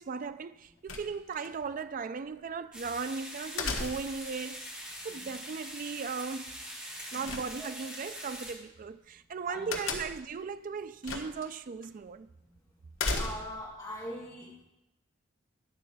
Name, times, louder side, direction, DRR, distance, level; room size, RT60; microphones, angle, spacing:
voice 1, 0.0-4.7 5.0-6.6 7.1-12.3, right 5 dB, 40° right, 0.3 m, -37 dB
sound 1, 0.9-1.5 3.6-4.3 7.3-8.0 9.7-10.3 11.0-11.5 11.8-11.9 13.0-13.7, left 3 dB, 85° left, 1.2 m, -35 dB
sound 2, 2.7-8.5, equal, 5° right, 1.9 m, -43 dB
voice 2, 13.1-14.6, left 1 dB, 20° left, 2.4 m, -42 dB
10.5 x 4.2 x 6.7 m
head